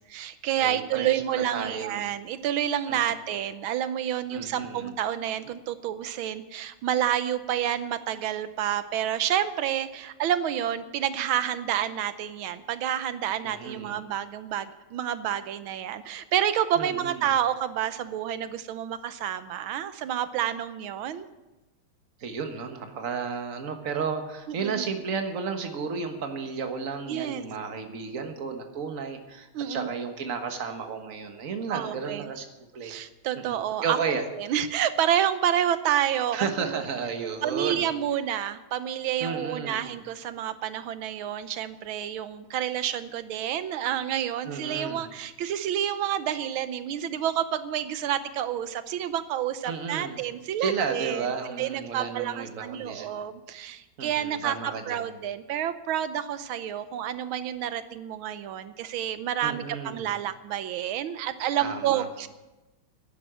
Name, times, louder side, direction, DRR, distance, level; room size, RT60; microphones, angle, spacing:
voice 1, 0.0-21.3 24.5-24.8 27.1-27.4 29.5-29.9 31.7-32.3 32.8-34.0 34.3-36.8 37.4-51.3 51.6-62.3, right 10 dB, 85° right, 12 dB, 1.6 m, -29 dB
voice 2, 0.6-1.9 2.9-3.0 4.3-4.9 13.4-14.0 16.7-17.2 22.2-32.4 32.7-32.9 33.5-34.3 36.3-37.9 39.2-39.9 44.4-45.1 49.6-50.2 50.6-53.1 54.0-55.0 59.4-60.1 61.6-62.1, right 5 dB, 45° right, 5 dB, 1.7 m, -33 dB
11.5 x 10.5 x 7.9 m, 1.1 s
omnidirectional pair, 2.2 m